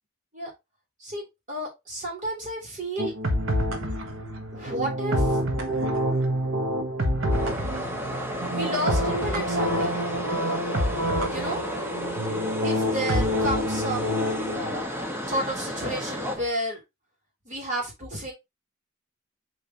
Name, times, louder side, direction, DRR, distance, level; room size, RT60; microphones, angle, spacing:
voice 1, 1.0-3.1 4.5-5.4 8.5-10.0 11.3-11.6 12.6-14.2 15.3-16.8 17.5-18.3, right 1 dB, 40° right, -1 dB, 3.7 m, -31 dB
sound 1, 3.0-14.8, equal, 80° right, 1.3 m, -27 dB
sound 2, 7.3-16.4, equal, 10° right, 1.5 m, -32 dB
7.3 x 4.9 x 3.0 m, 0.21 s
head